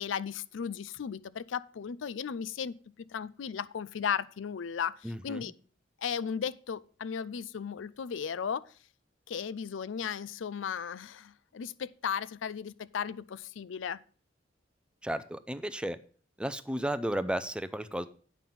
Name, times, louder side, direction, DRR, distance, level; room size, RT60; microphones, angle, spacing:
voice 1, 0.0-5.5 6.0-8.7 9.3-14.0, left 7 dB, 80° left, 0.4 m, -36 dB
voice 2, 5.0-5.5 15.0-16.0 16.4-18.1, right 1 dB, 5° right, 0.5 m, -33 dB
9.1 x 6.0 x 5.3 m
head